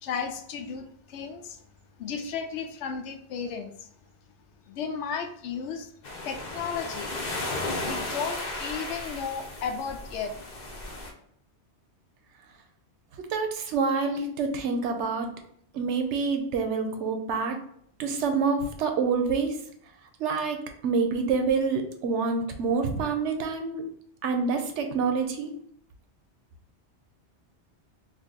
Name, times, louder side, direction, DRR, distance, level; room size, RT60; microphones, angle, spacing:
voice 1, 0.0-1.6 2.0-3.9 4.7-5.9 6.2-7.1 7.8-10.3, left 6 dB, 85° left, 6 dB, 0.9 m, -34 dB
sound 1, 6.0-11.1, left 2 dB, 45° left, 0.7 m, -35 dB
voice 2, 13.3-15.3 15.7-17.6 18.0-19.6 20.2-23.8 24.2-25.5, right 4 dB, 85° right, 5 dB, 0.9 m, -27 dB
2.8 x 2.6 x 3.7 m, 0.67 s
omnidirectional pair, 1.2 m